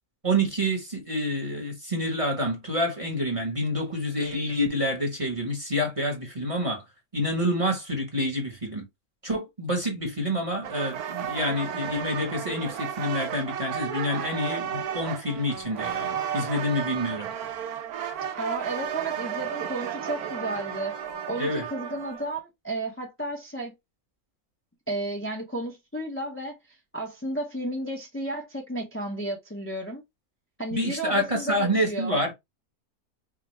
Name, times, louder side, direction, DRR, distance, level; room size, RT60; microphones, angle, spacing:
voice 1, 0.2-6.8 7.1-8.9 9.2-17.3 21.4-21.6 30.7-32.3, equal, 25° right, 1.0 m, -28 dB
sound 1, 10.6-22.4, right 9 dB, 80° right, 1.2 m, -33 dB
voice 2, 18.4-20.9 21.3-23.7 24.9-30.0 30.6-32.2, right 1 dB, 10° left, 0.6 m, -33 dB
4.9 x 2.2 x 3.1 m
omnidirectional pair, 1.6 m